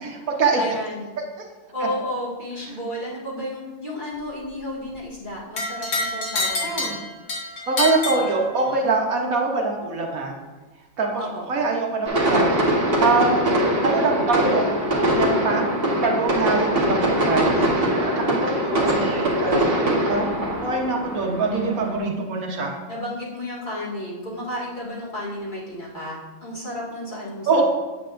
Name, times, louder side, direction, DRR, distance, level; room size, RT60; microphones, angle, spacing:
voice 1, 0.0-0.6 6.6-7.0 7.7-10.4 11.0-13.6 13.8-14.8 15.1-15.7 16.0-17.6 18.2-22.7 27.5-27.6, right 3 dB, 80° right, 1 dB, 1.5 m, -24 dB
voice 2, 0.6-1.1 1.7-7.0 8.0-8.3 11.2-11.5 22.9-27.6, left 1 dB, 35° left, -7 dB, 2.2 m, -32 dB
sound 1, 5.6-8.9, left 2 dB, 90° left, 1.8 m, -27 dB
sound 2, 12.1-22.0, equal, 45° right, 1.5 m, -22 dB
8.6 x 7.9 x 2.6 m, 1.3 s
omnidirectional pair, 1.4 m